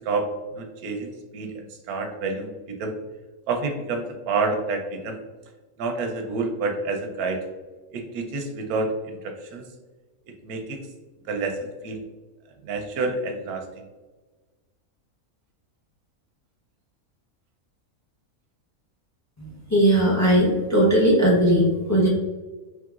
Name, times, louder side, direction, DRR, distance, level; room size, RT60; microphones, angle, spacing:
voice 1, 0.0-2.9 3.5-5.2 5.8-7.4 7.9-9.6 10.4-10.8 11.3-11.6 11.8-12.0 12.6-13.8, right 3 dB, 90° right, 4 dB, 1.1 m, -28 dB
voice 2, 19.4-22.1, right 1 dB, 25° left, -4 dB, 0.3 m, -19 dB
3.7 x 3.2 x 2.3 m, 1.3 s
omnidirectional pair, 1.5 m